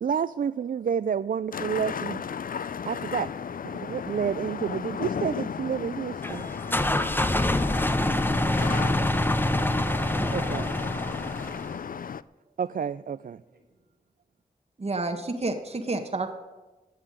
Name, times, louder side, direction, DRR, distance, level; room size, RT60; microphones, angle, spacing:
voice 1, 0.0-2.2 2.9-3.3 3.6-6.4 10.3-10.7 12.6-13.4, right 7 dB, 60° right, 14 dB, 0.4 m, -29 dB
sound 1, 1.5-12.2, left 7 dB, 60° left, 0.4 m, -34 dB
sound 2, 6.2-11.8, left 1 dB, 15° left, 0.8 m, -26 dB
voice 2, 8.1-8.5 9.4-11.3 13.5-13.6, right 2 dB, 85° right, 3 dB, 3.4 m, -51 dB
voice 3, 14.8-16.3, right 2 dB, 40° right, 6 dB, 1.2 m, -29 dB
16.0 x 5.7 x 9.8 m, 1.2 s
cardioid pair, 55°, 16 cm